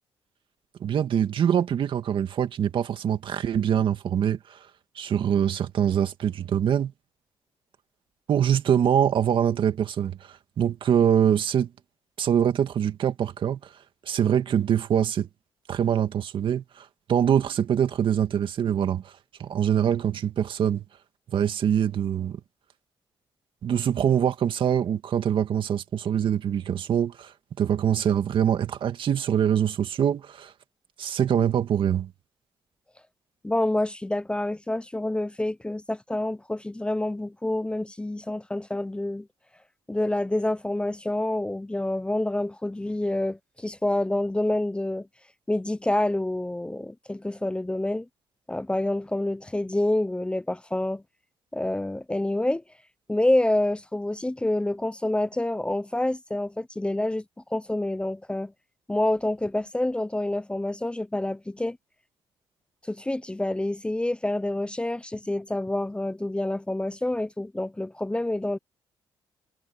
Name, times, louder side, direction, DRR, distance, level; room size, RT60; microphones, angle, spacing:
voice 1, 0.8-4.7 5.0-6.9 8.3-11.7 12.2-13.7 14.0-15.3 15.7-20.9 21.3-22.4 23.6-30.5 31.0-32.1, right 9 dB, 65° right, 2.2 m, -24 dB
voice 2, 33.4-39.3 39.9-45.1 45.5-48.1 48.5-51.0 51.5-52.6 53.1-57.2 57.5-58.5 58.9-61.8 62.9-68.6, left 1 dB, 10° left, 0.8 m, -27 dB
cardioid pair, 75°, 9 cm